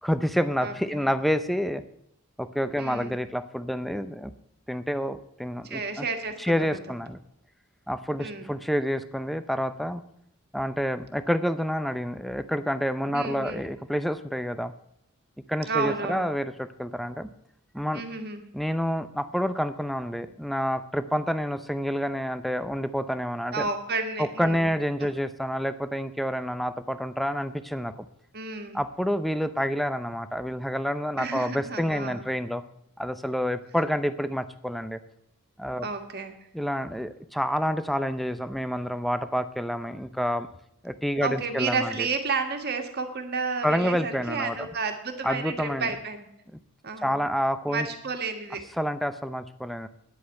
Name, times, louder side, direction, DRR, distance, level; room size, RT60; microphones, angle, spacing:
voice 1, 0.0-1.8 2.4-4.3 4.7-6.1 6.4-7.2 7.9-10.0 10.5-14.7 15.5-17.3 17.7-18.0 18.5-23.7 24.2-27.9 28.7-32.6 33.0-35.0 35.6-35.9 36.5-40.5 40.8-42.1 43.6-44.7 45.2-45.9 47.0-47.9 48.8-49.9, equal, ahead, 12 dB, 0.5 m, -28 dB
voice 2, 0.6-1.0 2.8-3.1 5.6-6.4 8.2-8.5 13.1-13.7 15.7-16.3 17.9-18.4 23.5-24.7 25.0-25.1 28.3-28.8 31.2-32.2 35.8-36.3 41.2-46.3 46.8-47.1 47.7-48.6, right 4 dB, 45° right, 5 dB, 1.6 m, -31 dB
10.0 x 8.5 x 8.9 m, 0.76 s
head